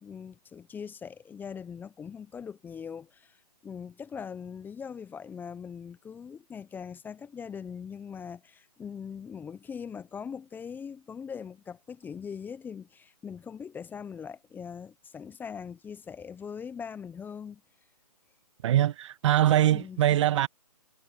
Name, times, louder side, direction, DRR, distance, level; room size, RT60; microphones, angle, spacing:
voice 1, 0.0-17.6 19.7-20.2, left 7 dB, 10° left, 0.9 m, -41 dB
voice 2, 18.6-20.5, right 12 dB, 45° right, 1.6 m, -23 dB
figure-of-eight pair, 135°, 21 cm